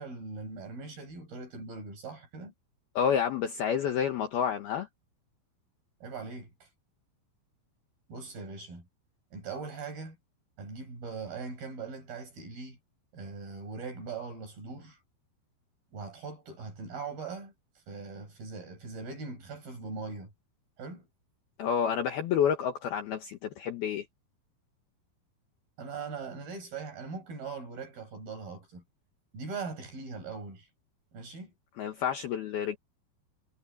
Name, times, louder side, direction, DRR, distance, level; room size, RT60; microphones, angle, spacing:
voice 1, 0.0-2.5 6.0-6.7 8.1-8.9 9.3-10.2 10.6-12.8 13.1-15.0 15.9-17.5 17.9-20.3 20.8-21.1 25.8-28.8 29.3-30.7 31.1-31.5, right 4 dB, 45° right, 8.5 m, -40 dB
voice 2, 3.0-4.9 21.6-24.1 31.8-32.8, left 8 dB, 65° left, 2.7 m, -29 dB
omnidirectional pair, 5.8 m